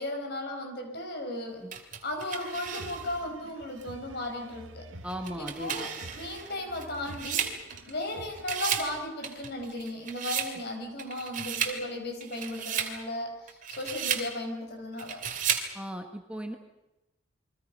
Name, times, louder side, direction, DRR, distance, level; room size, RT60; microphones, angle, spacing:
voice 1, 0.0-1.7 2.0-4.9 5.4-15.2, left 1 dB, 55° left, 4 dB, 5.3 m, -36 dB
sound 1, 1.7-3.2 3.8-3.9 5.1-8.1 8.4-8.9 9.2-10.5 11.0-11.8 12.2-12.9 13.5-14.3 15.0-15.7, right 8 dB, 45° right, 2.7 m, -33 dB
sound 2, 2.5-8.4, right 1 dB, 90° right, 1.9 m, -49 dB
voice 2, 5.0-5.9 15.7-16.6, equal, 5° right, 4 dB, 1.5 m, -37 dB
29.0 x 23.5 x 5.5 m, 0.96 s
head